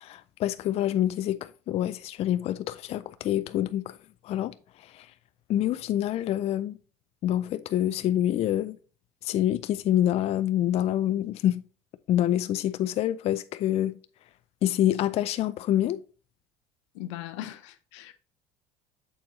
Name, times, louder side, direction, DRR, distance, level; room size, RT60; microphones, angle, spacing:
voice 1, 0.0-4.0 4.2-5.1 5.5-6.8 7.2-8.8 9.2-11.6 12.1-14.0 14.6-16.0, left 12 dB, 45° left, 0.4 m, -26 dB
voice 2, 16.9-18.1, left 13 dB, 90° left, 0.7 m, -39 dB
6.9 x 4.3 x 3.6 m
supercardioid pair, 110°, 15 cm